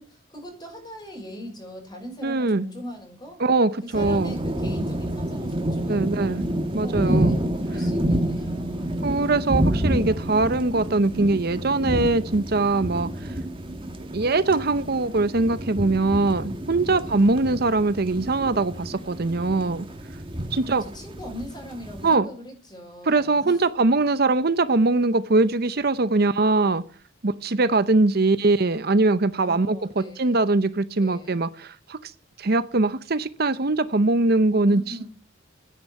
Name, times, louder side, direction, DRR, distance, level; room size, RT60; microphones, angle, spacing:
voice 1, 0.0-3.4 3.8-6.4 6.8-9.0 16.8-17.2 20.5-23.6 29.4-30.4 31.0-31.4 34.7-35.1, equal, 20° left, 5.9 m, -40 dB
voice 2, 2.2-2.7 3.4-4.3 5.9-6.4 6.7-7.3 9.0-13.3 14.1-19.9 20.5-20.8 22.0-22.3 23.1-26.8 27.2-32.1 32.4-35.0, right 3 dB, 50° right, 0.8 m, -22 dB
sound 1, 3.9-22.1, right 1 dB, 25° right, 1.9 m, -29 dB
14.0 x 10.0 x 8.7 m
head